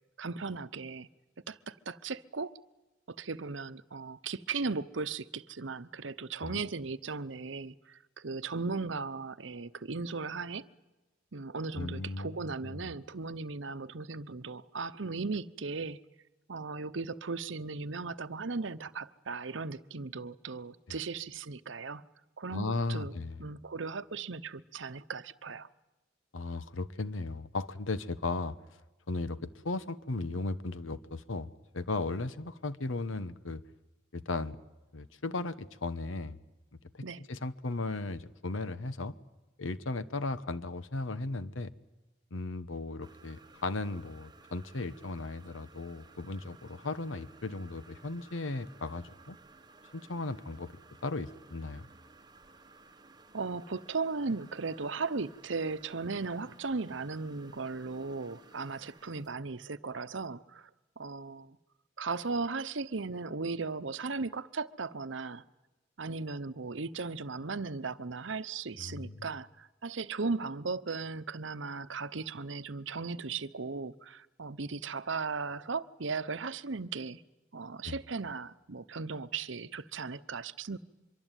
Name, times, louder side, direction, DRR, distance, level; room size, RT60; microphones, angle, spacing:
voice 1, 0.2-1.1 1.5-2.5 3.1-10.7 11.3-16.0 16.5-22.0 22.4-25.7 37.0-37.2 53.3-60.7 61.0-61.6 62.0-65.4 66.0-77.2 77.5-80.8, right 4 dB, 70° right, 0.9 m, -37 dB
voice 2, 11.7-12.8 22.5-23.4 26.3-28.6 29.1-33.6 34.1-34.6 34.9-36.4 36.9-39.2 39.6-41.7 42.3-49.4 49.9-50.7 51.0-51.9 68.8-69.2 77.8-77.9, left 3 dB, 85° left, 1.1 m, -36 dB
sound 1, 43.0-59.3, right 3 dB, 20° right, 1.3 m, -57 dB
24.5 x 23.5 x 9.1 m
head